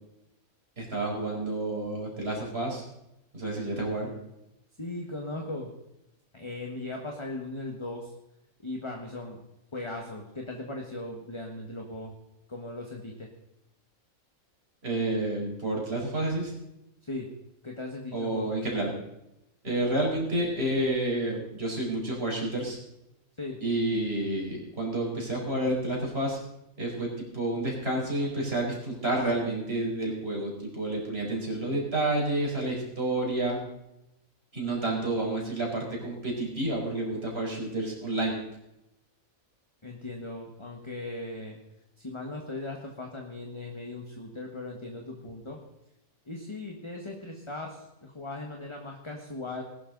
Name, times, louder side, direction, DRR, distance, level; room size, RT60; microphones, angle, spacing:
voice 1, 0.8-2.8 3.3-4.1 14.8-16.5 18.1-18.9 19.6-22.8 23.6-26.4 26.8-33.6 34.5-38.4, right 1 dB, 45° right, -2 dB, 4.9 m, -29 dB
voice 2, 4.8-5.7 6.3-8.1 8.6-9.4 9.7-12.1 12.5-13.3 17.0-17.3 17.6-18.5 23.4-23.6 39.8-41.6 42.0-45.6 46.3-49.6, left 2 dB, 20° left, 1 dB, 1.6 m, -38 dB
20.0 x 11.5 x 4.0 m, 0.87 s
omnidirectional pair, 1.5 m